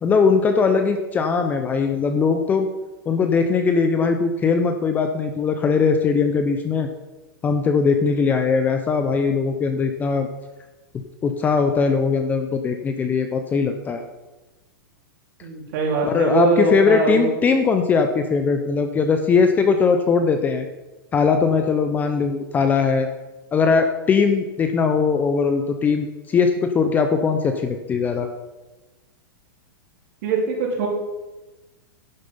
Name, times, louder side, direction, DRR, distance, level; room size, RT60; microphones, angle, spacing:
voice 1, 0.0-2.7 3.1-6.9 7.4-10.3 11.2-14.0 16.0-20.7 21.1-23.1 23.5-28.3, left 5 dB, 15° left, 6 dB, 0.6 m, -20 dB
voice 2, 15.4-17.2 30.2-30.9, right 3 dB, 50° right, -1 dB, 3.3 m, -22 dB
11.0 x 7.5 x 5.4 m, 1.1 s
supercardioid pair, 155°, 12 cm